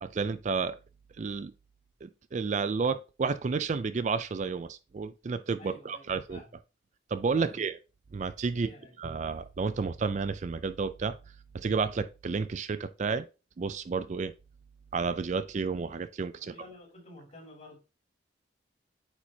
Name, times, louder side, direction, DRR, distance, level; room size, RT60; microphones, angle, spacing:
voice 1, 0.0-0.8 1.2-1.5 2.0-6.4 7.1-7.8 8.1-8.7 9.0-11.2 11.5-13.3 13.6-14.3 14.9-16.5, right 5 dB, 40° right, 0.4 m, -31 dB
voice 2, 5.6-6.6 7.3-7.5 8.5-9.0 16.4-17.8, left 1 dB, 45° left, 3.4 m, -51 dB
8.6 x 4.4 x 2.7 m
head